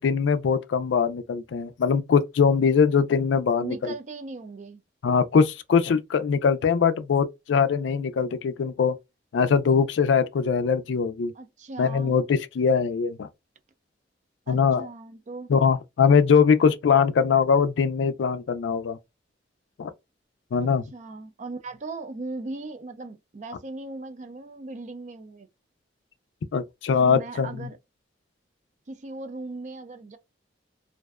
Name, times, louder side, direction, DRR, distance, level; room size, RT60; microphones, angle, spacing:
voice 1, 0.0-3.9 5.0-9.0 9.3-11.3 11.8-13.3 14.5-14.9 15.5-19.0 19.8-19.9 20.5-20.8 26.5-27.5, left 6 dB, 85° left, 0.4 m, -22 dB
voice 2, 3.6-4.8 11.3-12.2 14.5-15.5 20.6-25.5 26.9-27.8 28.9-30.2, right 3 dB, 40° right, 0.4 m, -38 dB
2.6 x 2.1 x 2.3 m
head